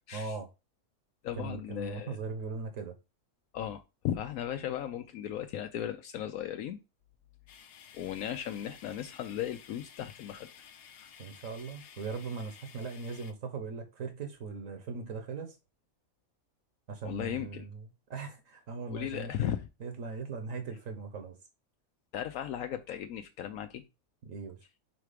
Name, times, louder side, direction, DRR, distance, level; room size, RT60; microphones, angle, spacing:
voice 1, 0.1-0.5 1.4-2.9 11.2-15.6 16.9-17.7 18.1-19.3 19.8-21.3 24.2-24.6, right 4 dB, 65° right, 1.3 m, -39 dB
voice 2, 1.2-2.2 3.5-6.8 7.9-10.5 11.0-11.1 11.8-11.9 17.0-17.7 18.9-19.7 22.1-23.8, left 10 dB, 80° left, 1.0 m, -36 dB
sound 1, 7.5-13.3, left 8 dB, 60° left, 0.7 m, -54 dB
4.6 x 4.1 x 5.0 m
omnidirectional pair, 1.5 m